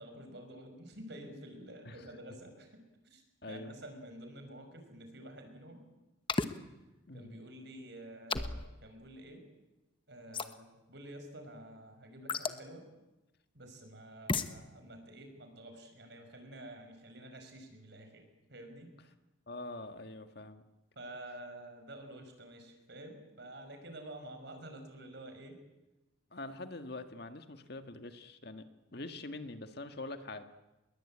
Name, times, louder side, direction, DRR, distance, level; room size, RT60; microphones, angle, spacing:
voice 1, 0.0-5.8 7.1-9.4 10.1-12.8 13.5-18.9 21.0-25.6, right 1 dB, 55° right, 6 dB, 5.9 m, -49 dB
voice 2, 3.4-3.8 7.1-7.4 19.5-20.6 26.3-30.4, left 2 dB, 50° left, 8 dB, 1.8 m, -44 dB
sound 1, 6.3-6.5 8.3-8.7 10.3-10.5 12.3-12.6 14.3-14.5, left 3 dB, 25° left, 1.1 m, -32 dB
29.0 x 22.0 x 8.7 m, 1.0 s
head